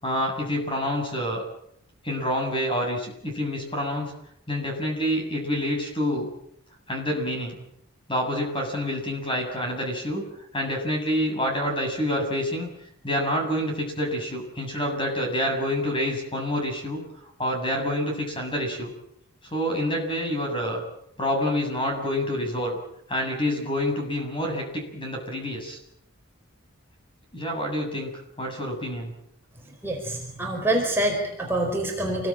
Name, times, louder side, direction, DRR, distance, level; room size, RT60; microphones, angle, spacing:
voice 1, 0.0-1.4 2.0-4.1 4.5-6.3 6.9-7.6 8.1-10.3 10.5-12.7 13.0-17.0 17.4-18.9 19.5-20.8 21.2-22.8 23.1-25.8 27.3-28.1 28.4-29.1, equal, 25° left, 2 dB, 7.4 m, -27 dB
voice 2, 29.8-32.3, right 1 dB, 10° right, -1 dB, 4.4 m, -26 dB
28.0 x 21.5 x 8.9 m, 0.76 s
head